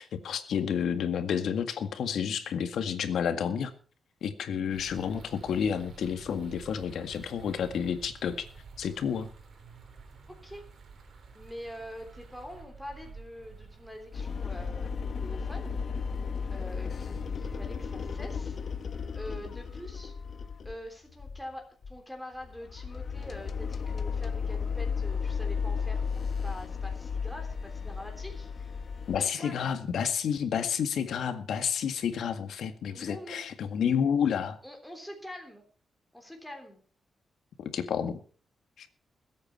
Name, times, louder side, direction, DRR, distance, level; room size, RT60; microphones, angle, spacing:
voice 1, 0.0-3.7 4.2-8.5 8.8-9.3 29.1-34.6 37.6-38.2 38.8-38.9, left 7 dB, 80° left, 9 dB, 1.9 m, -30 dB
sound 1, 4.7-19.9, right 4 dB, 55° right, 3.9 m, -50 dB
voice 2, 10.3-10.7 11.3-15.8 16.5-18.6 19.1-20.1 20.6-28.7 29.1-29.6 32.8-33.5 34.6-35.6 36.1-36.8, equal, ahead, 2 dB, 3.4 m, -45 dB
sound 2, 14.1-20.9 21.2-21.5 21.8-22.0 22.4-29.2, left 6 dB, 50° left, 1.1 m, -34 dB
21.5 x 8.7 x 4.5 m, 0.41 s
cardioid pair, 125°, 0 cm